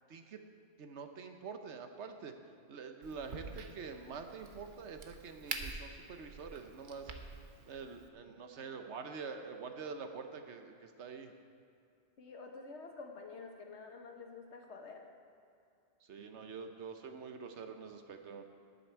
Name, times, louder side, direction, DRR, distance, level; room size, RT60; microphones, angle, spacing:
voice 1, 0.8-2.3 2.7-7.1 7.7-11.3 16.1-18.4, right 5 dB, 70° right, 6 dB, 1.1 m, -46 dB
Crack, 3.0-8.1, right 4 dB, 50° right, 0.9 m, -47 dB
voice 2, 12.2-15.1, left 4 dB, 70° left, 3 dB, 1.5 m, -49 dB
18.5 x 6.9 x 4.6 m, 2.5 s
omnidirectional pair, 1.2 m